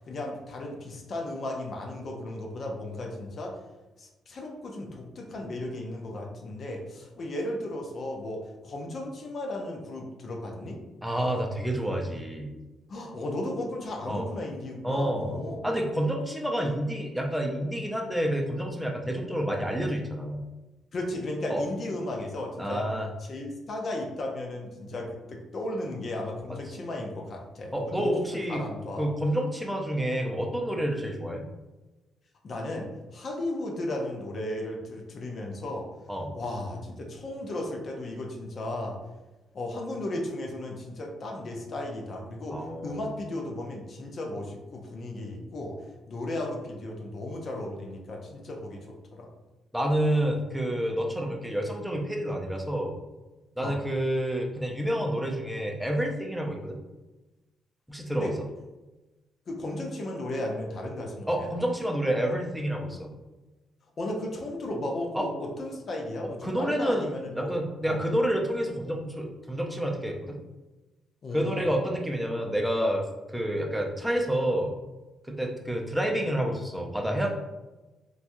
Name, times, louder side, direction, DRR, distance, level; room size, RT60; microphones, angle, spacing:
voice 1, 0.1-3.6 4.0-10.8 12.9-15.7 20.9-22.9 23.2-28.1 28.5-29.1 32.4-35.9 36.3-39.0 39.5-45.8 46.1-49.3 53.6-53.8 58.2-58.3 59.5-61.5 64.0-67.5 67.8-68.0 71.2-71.7, left 1 dB, 50° left, 0 dB, 0.5 m, -35 dB
voice 2, 11.0-12.5 14.1-14.2 14.8-20.4 21.5-21.6 22.6-23.1 27.7-28.6 29.0-31.5 36.1-36.3 42.5-43.1 49.7-53.0 53.6-56.8 57.9-58.3 61.3-63.1 65.1-65.3 66.4-67.1 67.3-70.4 71.3-74.7 75.3-77.3, right 1 dB, 5° right, 1 dB, 0.5 m, -29 dB
3.0 x 2.3 x 2.6 m, 1.1 s
cardioid pair, 90°, 0 cm